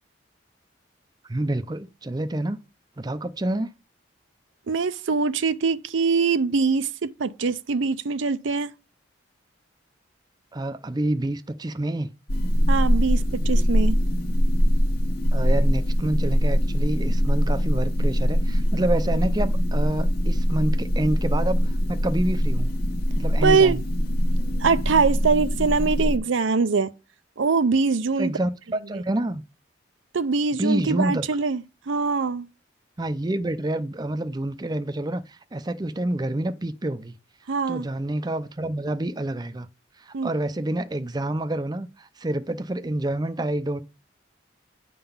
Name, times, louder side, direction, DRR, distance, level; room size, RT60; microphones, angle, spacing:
voice 1, 1.2-2.6 3.0-3.7 10.5-12.1 15.3-22.7 23.2-23.8 28.2-29.4 30.6-31.2 33.0-37.1 37.7-39.7 40.0-43.8, right 1 dB, 20° right, 0.5 m, -28 dB
voice 2, 4.7-8.7 12.7-14.0 23.4-23.8 24.6-26.9 27.4-28.3 30.1-32.5 37.5-37.8 40.1-40.3, right 4 dB, 75° right, 0.5 m, -23 dB
sound 1, 12.3-26.2, equal, 50° left, 1.3 m, -22 dB
9.9 x 3.8 x 7.0 m
head